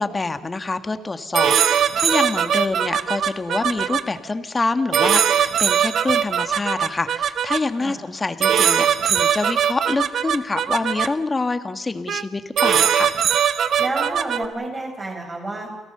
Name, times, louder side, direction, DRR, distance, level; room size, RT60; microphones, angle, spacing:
voice 1, 0.0-13.1, left 3 dB, 25° left, 10 dB, 1.6 m, -26 dB
sound 1, 1.3-4.0 4.9-7.6 8.4-11.1 12.1-12.2 12.6-14.5, right 8 dB, 65° right, 1.0 m, -20 dB
voice 2, 13.8-15.7, right 2 dB, 30° right, 1 dB, 7.8 m, -29 dB
28.0 x 17.0 x 6.8 m, 1.2 s
cardioid pair, 90°, 0 cm